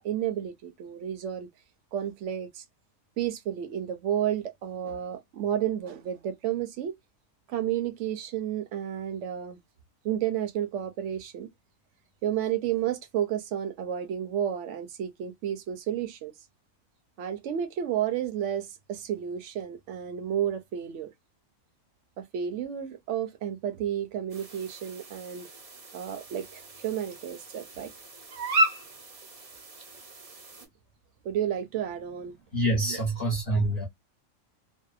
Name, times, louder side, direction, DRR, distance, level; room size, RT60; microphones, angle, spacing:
voice 1, 0.0-1.5 1.9-2.6 3.2-6.9 7.5-9.6 10.0-11.5 12.2-16.3 17.2-21.1 22.2-25.5 25.9-27.9 31.2-32.4 32.8-33.0 33.5-33.6, right 10 dB, 70° right, 0.8 m, -31 dB
sound 1, 24.3-30.7, right 1 dB, 45° right, 0.5 m, -34 dB
voice 2, 32.5-33.9, right 1 dB, 45° left, 0.9 m, -26 dB
2.7 x 2.0 x 2.3 m
omnidirectional pair, 1.4 m